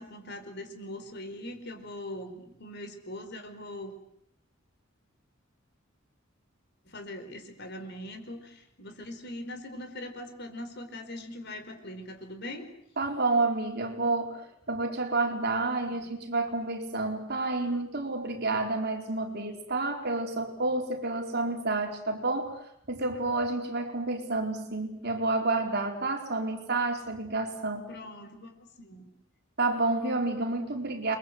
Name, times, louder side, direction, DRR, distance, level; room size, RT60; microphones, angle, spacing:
voice 1, 0.0-3.9 6.8-12.7 15.8-16.1 27.9-29.1, left 1 dB, 55° left, 7 dB, 4.8 m, -41 dB
voice 2, 13.0-28.0 29.6-31.2, right 2 dB, 55° right, 3 dB, 4.1 m, -30 dB
30.0 x 22.5 x 8.0 m, 0.71 s
head